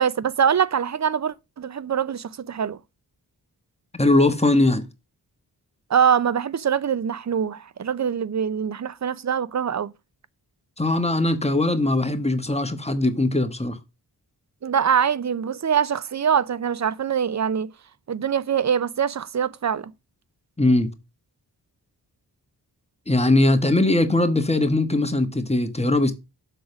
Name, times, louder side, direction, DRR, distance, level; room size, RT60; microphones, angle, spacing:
voice 1, 0.0-2.8 5.9-9.9 14.6-17.7 18.1-19.9, right 8 dB, 40° right, 0.6 m, -23 dB
voice 2, 4.0-4.9 10.8-13.8 20.6-20.9 23.1-26.1, left 2 dB, 15° left, 1.3 m, -20 dB
6.7 x 3.9 x 6.0 m
cardioid pair, 45°, 42 cm